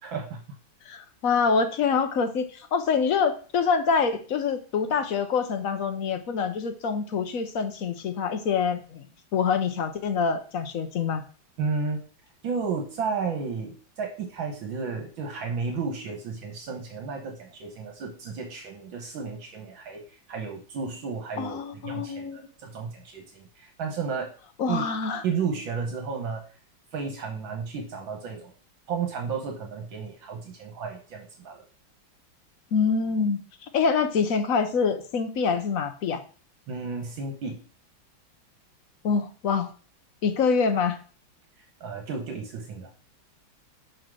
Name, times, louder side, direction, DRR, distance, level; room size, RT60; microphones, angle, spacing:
voice 1, 0.0-0.4 11.6-12.0 12.4-24.3 24.7-24.8 25.2-26.4 26.9-28.5 28.9-31.6 36.7-37.6 41.8-42.9, right 5 dB, 75° right, 3 dB, 1.9 m, -33 dB
voice 2, 0.9-11.2 21.4-22.4 24.6-25.2 32.7-36.2 39.0-39.7 40.2-41.0, left 5 dB, 60° left, 8 dB, 1.0 m, -26 dB
5.8 x 5.0 x 6.3 m, 0.40 s
omnidirectional pair, 2.2 m